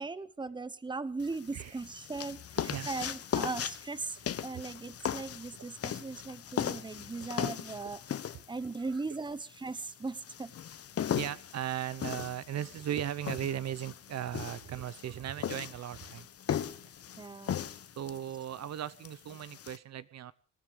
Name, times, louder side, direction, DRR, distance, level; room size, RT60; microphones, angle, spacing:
voice 1, 0.0-8.0 8.5-10.5 17.2-17.5, right 3 dB, 15° right, 17 dB, 1.0 m, -38 dB
sound 1, 1.2-19.8, left 9 dB, 50° left, 1.1 m, -38 dB
voice 2, 2.6-2.9 4.5-4.6 7.1-7.3 8.8-9.0 11.1-16.3 16.8-16.9 18.0-20.3, right 11 dB, 60° right, 17 dB, 0.8 m, -37 dB
25.0 x 11.0 x 5.0 m, 0.39 s
cardioid pair, 90°, 30 cm